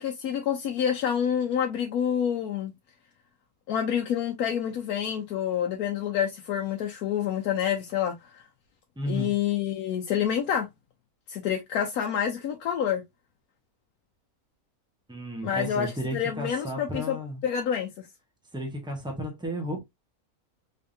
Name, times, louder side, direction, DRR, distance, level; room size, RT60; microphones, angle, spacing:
voice 1, 0.0-2.7 3.7-8.4 9.1-10.7 11.3-13.0 15.4-17.2 17.4-18.1, left 9 dB, 85° left, 1.2 m, -28 dB
voice 2, 9.0-9.4 15.1-17.4 18.5-19.8, equal, 5° right, 1.0 m, -33 dB
3.6 x 3.4 x 2.6 m
omnidirectional pair, 1.5 m